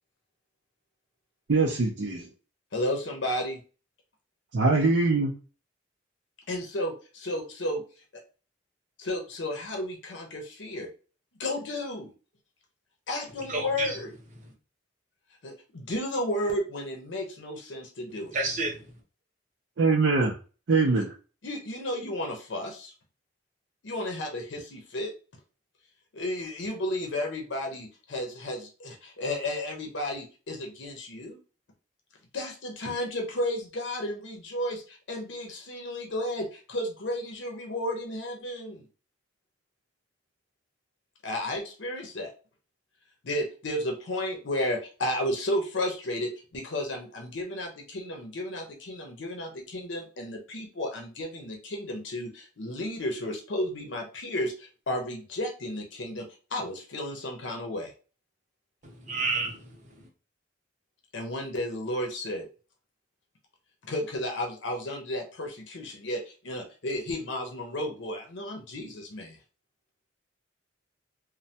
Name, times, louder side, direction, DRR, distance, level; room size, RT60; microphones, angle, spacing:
voice 1, 1.5-2.3 4.5-5.3 19.8-20.3 20.7-21.1, right 3 dB, 65° right, 0.5 m, -23 dB
voice 2, 2.7-3.6 6.5-7.8 9.0-10.9 11.4-12.1 13.1-14.1 15.4-18.4 20.9-21.0 21.4-22.9 23.8-25.1 26.1-31.4 32.3-38.8 41.2-42.3 43.2-57.9 61.1-62.5 63.8-69.4, left 1 dB, 70° left, 0.7 m, -33 dB
voice 3, 13.5-14.0 18.3-18.8 58.8-59.7, right 3 dB, 40° right, 0.8 m, -30 dB
3.2 x 2.2 x 2.7 m
head